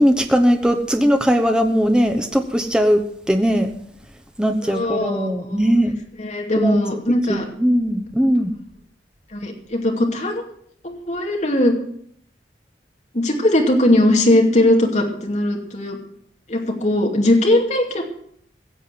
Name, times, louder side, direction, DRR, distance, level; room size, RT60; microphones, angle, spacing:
voice 1, 0.0-3.0 3.3-3.7 4.4-5.9 6.6-6.8 7.3-8.5, equal, 5° right, 6 dB, 0.9 m, -18 dB
voice 2, 4.6-5.7 6.2-7.5 9.3-10.4 10.8-11.7 13.1-16.0 16.5-18.0, left 1 dB, 40° left, 1 dB, 2.4 m, -19 dB
16.0 x 7.6 x 7.6 m, 0.66 s
head